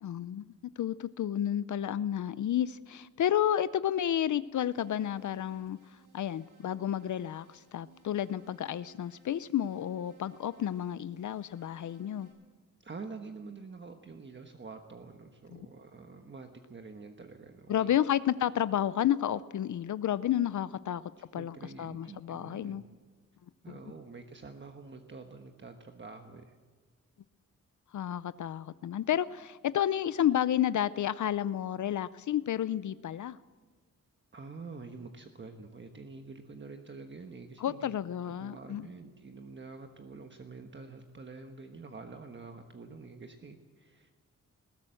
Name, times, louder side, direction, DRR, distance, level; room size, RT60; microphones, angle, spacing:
voice 1, 0.0-0.5 0.8-5.8 6.1-12.3 15.5-15.7 17.7-21.0 21.3-22.8 27.9-33.4 37.6-38.9, left 10 dB, 70° left, 16 dB, 0.5 m, -31 dB
sound 1, 4.6-12.3, right 4 dB, 85° right, 7.3 m, -62 dB
voice 2, 12.8-17.9 21.3-22.9 23.6-26.6 34.3-38.0 38.2-44.3, right 4 dB, 40° right, 5 dB, 1.3 m, -47 dB
20.5 x 17.0 x 7.8 m, 1.4 s
wide cardioid pair, 135°, 31 cm